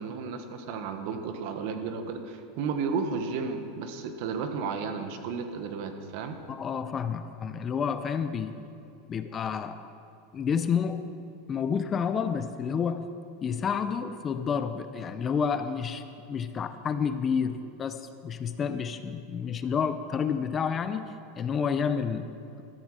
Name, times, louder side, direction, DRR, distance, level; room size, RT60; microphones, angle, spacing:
voice 1, 0.0-6.3, right 5 dB, 60° right, 7 dB, 1.4 m, -33 dB
voice 2, 6.5-8.6 9.1-9.9 10.3-11.1 11.5-13.1 13.4-16.0 16.3-22.3, left 6 dB, 25° left, 10 dB, 0.6 m, -29 dB
14.0 x 13.5 x 4.9 m, 2.5 s
supercardioid pair, 145°, 0 cm